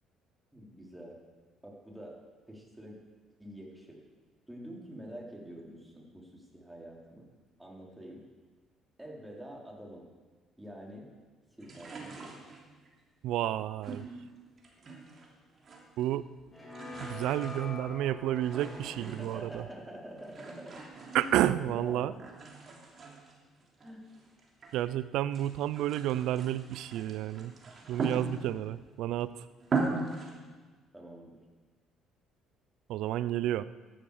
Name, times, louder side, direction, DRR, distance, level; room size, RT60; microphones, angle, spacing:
voice 1, 0.5-1.2 1.6-2.2 2.5-3.0 3.4-4.0 4.5-7.3 7.6-8.2 9.0-10.1 10.6-11.1 11.6-12.5 18.7-20.8 21.1-22.2 23.8-24.0 30.9-31.4, right 1 dB, 10° right, -2 dB, 4.0 m, -46 dB
sound 1, 11.6-12.9 13.8-15.3 15.6-16.2 16.5-19.6 20.2-21.8 22.2-24.8 25.2-28.7 29.2-29.3 29.6-30.3, right 4 dB, 45° right, 3.0 m, -39 dB
voice 2, 13.2-14.1 16.0-16.3 17.0-19.6 21.1-22.1 24.7-27.5 27.9-29.5 32.9-33.6, right 13 dB, 70° right, 17 dB, 0.4 m, -31 dB
sound 2, 16.5-21.6, left 3 dB, 25° left, 4.3 m, -47 dB
14.0 x 11.5 x 5.0 m, 1.4 s
hypercardioid pair, 55°, 0 cm